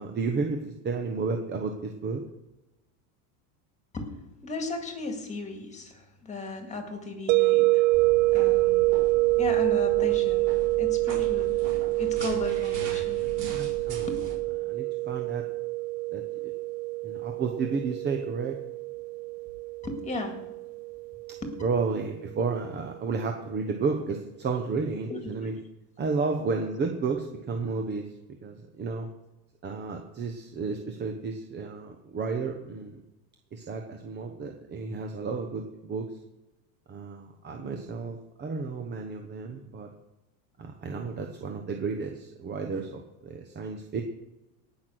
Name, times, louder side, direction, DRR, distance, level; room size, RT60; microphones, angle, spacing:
voice 1, 0.0-2.2 13.5-14.1 14.7-15.4 16.1-16.2 17.0-18.6 21.6-25.6 26.0-28.0 28.4-29.1 29.6-33.0 33.5-36.1 36.9-39.9 40.6-44.0, right 4 dB, 20° right, 4 dB, 1.0 m, -32 dB
voice 2, 4.4-7.8 8.3-8.9 9.4-10.5 10.8-11.6 12.0-13.2 14.0-14.2 19.8-20.4 21.4-21.5 25.1-25.5, left 3 dB, 15° left, 4 dB, 2.1 m, -36 dB
sound 1, 7.3-22.2, right 21 dB, 85° right, 0.6 m, -26 dB
sound 2, 7.9-14.3, right 3 dB, 40° right, 5.0 m, -40 dB
18.0 x 6.2 x 6.4 m, 0.98 s
supercardioid pair, 145°, 49 cm